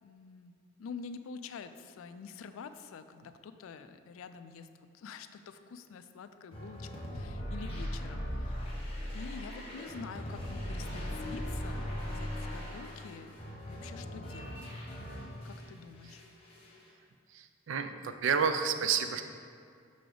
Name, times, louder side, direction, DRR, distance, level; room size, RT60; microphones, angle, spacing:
voice 1, 0.0-6.9 7.1-8.5 9.1-13.4 13.7-14.7 15.4-16.2, left 5 dB, 80° left, 10 dB, 0.3 m, -47 dB
sound 1, 6.5-15.7 16.0-16.8, equal, 30° left, 1.0 m, -39 dB
voice 2, 17.3-19.2, right 6 dB, 65° right, 9 dB, 0.4 m, -30 dB
5.9 x 4.9 x 3.8 m, 2.3 s
head